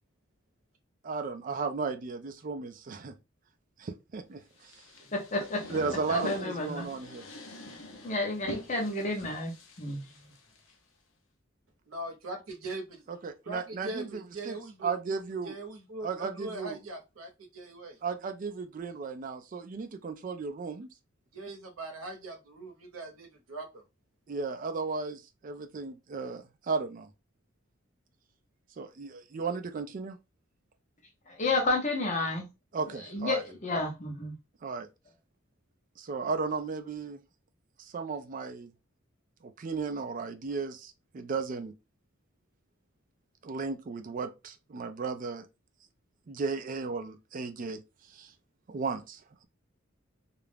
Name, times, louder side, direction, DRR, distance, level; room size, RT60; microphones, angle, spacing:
voice 1, 1.0-3.1 3.8-4.7 5.7-7.2 13.1-14.6 14.8-15.5 16.0-16.8 18.0-20.9 24.3-27.1 28.8-30.2 32.7-33.4 34.6-34.9 36.0-37.2 37.8-38.7 39.4-41.7 43.4-45.5 46.3-47.8 48.1-48.3 48.7-49.4, right 4 dB, 40° right, 0.4 m, -35 dB
sound 1, 4.6-10.7, left 2 dB, 85° left, 0.7 m, -45 dB
voice 2, 5.1-5.6 6.1-6.9 8.0-9.5 9.8-10.0 31.4-32.4 33.1-34.3, left 2 dB, 35° left, 0.7 m, -30 dB
voice 3, 11.9-13.0 13.5-14.9 15.4-18.0 21.3-23.8, right 2 dB, 90° right, 0.8 m, -41 dB
2.4 x 2.0 x 3.2 m
head